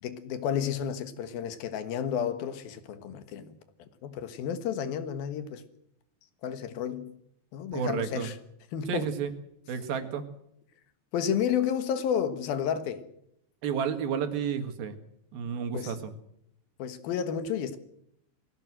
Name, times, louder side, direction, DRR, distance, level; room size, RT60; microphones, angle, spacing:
voice 1, 0.0-5.6 6.4-7.1 7.5-8.4 8.7-9.1 11.1-13.1 15.7-16.0 16.8-17.8, left 8 dB, 85° left, 3.3 m, -31 dB
voice 2, 7.7-8.3 8.9-9.3 9.7-10.2 13.6-15.0 15.3-16.1, right 7 dB, 85° right, 3.7 m, -31 dB
22.0 x 16.0 x 7.8 m
omnidirectional pair, 4.1 m